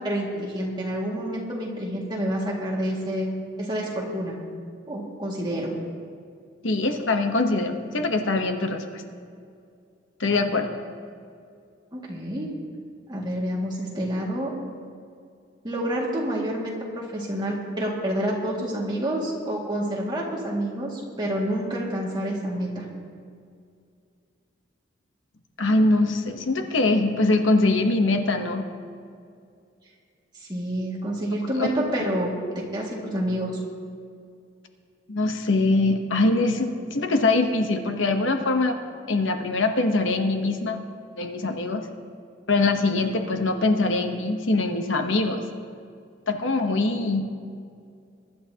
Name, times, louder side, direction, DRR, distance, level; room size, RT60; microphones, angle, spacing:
voice 1, 0.0-3.3 3.6-4.4 4.9-5.7 11.9-12.5 13.1-14.5 15.6-22.8 30.5-33.5, equal, 20° right, -4 dB, 2.0 m, -28 dB
voice 2, 6.6-9.0 10.2-10.8 25.6-28.7 31.5-31.7 35.1-38.8 39.1-40.8 41.2-41.9 42.5-45.4 46.3-47.3, left 2 dB, 70° left, 5 dB, 1.0 m, -23 dB
23.0 x 11.5 x 2.9 m, 2.3 s
head